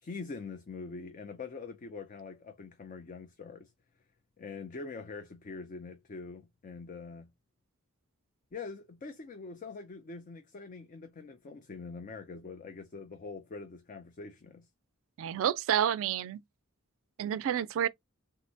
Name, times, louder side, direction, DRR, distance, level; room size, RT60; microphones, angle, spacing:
voice 1, 0.0-3.7 4.4-7.3 8.5-14.7, left 4 dB, 35° left, 0.4 m, -44 dB
voice 2, 15.2-16.4 17.2-17.9, right 9 dB, 65° right, 0.3 m, -29 dB
3.5 x 2.1 x 2.6 m
head